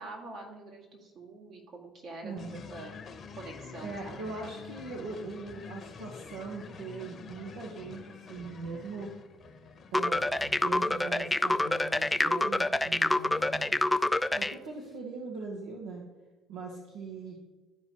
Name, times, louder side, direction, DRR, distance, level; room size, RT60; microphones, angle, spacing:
voice 1, 0.0-3.0 3.3-4.2, right 2 dB, 60° right, -1 dB, 2.1 m, -45 dB
voice 2, 2.2-2.5 3.8-9.1 9.9-13.8 14.3-16.0 16.5-17.4, right 4 dB, 80° right, -1 dB, 1.0 m, -40 dB
sound 1, 2.4-10.9, left 5 dB, 45° left, 0.9 m, -47 dB
sound 2, 9.9-14.5, left 1 dB, 10° left, 0.3 m, -27 dB
12.5 x 4.6 x 2.9 m, 1.2 s
hypercardioid pair, 60°, 0 cm